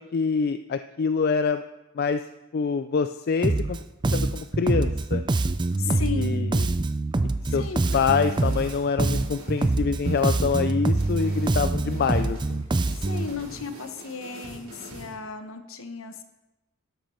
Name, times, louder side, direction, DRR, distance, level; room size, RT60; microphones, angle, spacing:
voice 1, 0.0-1.6 2.0-2.2 2.5-3.8 4.1-5.2 5.9-6.7 7.5-7.7 7.9-12.6, left 5 dB, 45° left, 10 dB, 0.3 m, -26 dB
Bass guitar, 3.4-3.8 4.0-8.7 9.0-13.3, right 2 dB, 20° right, 0.4 m, -25 dB
voice 2, 5.8-6.5 7.5-8.0 12.9-16.2, left 5 dB, 65° left, 8 dB, 1.1 m, -35 dB
sound 1, 7.7-15.1, right 1 dB, 75° right, 4.0 m, -45 dB
12.5 x 7.3 x 5.6 m, 1.0 s
head